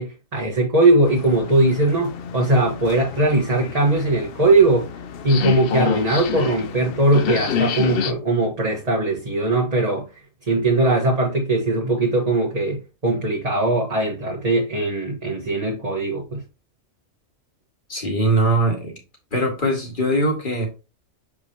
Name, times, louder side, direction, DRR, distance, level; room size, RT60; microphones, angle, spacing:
voice 1, 0.0-4.9 5.2-10.1 10.4-16.4, right 2 dB, 30° right, 1.4 m, -20 dB
sound 1, 1.0-8.1, left 7 dB, 60° left, 0.7 m, -28 dB
voice 2, 17.9-19.0 19.3-20.7, right 1 dB, 40° left, 2.2 m, -21 dB
7.0 x 5.0 x 2.9 m
omnidirectional pair, 1.3 m